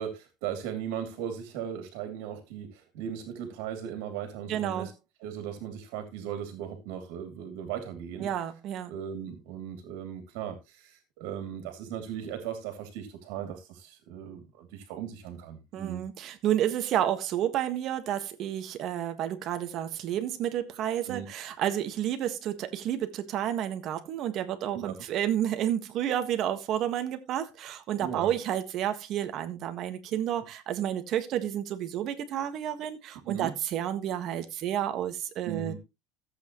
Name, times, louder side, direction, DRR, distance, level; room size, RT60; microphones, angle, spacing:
voice 1, 0.0-4.9 5.2-8.3 8.9-16.0 21.0-21.3 24.7-24.9 28.0-28.3 33.2-33.5 35.5-35.8, right 9 dB, 70° right, 2.8 m, -37 dB
voice 2, 4.5-4.9 8.2-8.9 15.7-35.8, right 11 dB, 40° right, 1.6 m, -30 dB
14.5 x 8.3 x 3.1 m
cardioid pair, 160°, 0 cm